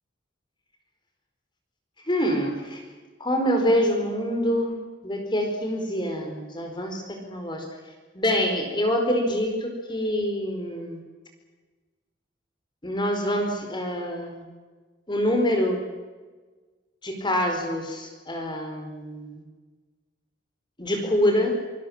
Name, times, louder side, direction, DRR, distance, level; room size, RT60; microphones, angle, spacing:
voice 1, 2.1-2.8 3.2-4.7 5.0-7.7 8.1-11.0 12.8-14.4 15.1-15.8 17.0-19.4 20.8-21.5, equal, 25° left, 4 dB, 4.5 m, -25 dB
26.0 x 20.5 x 7.3 m, 1.3 s
head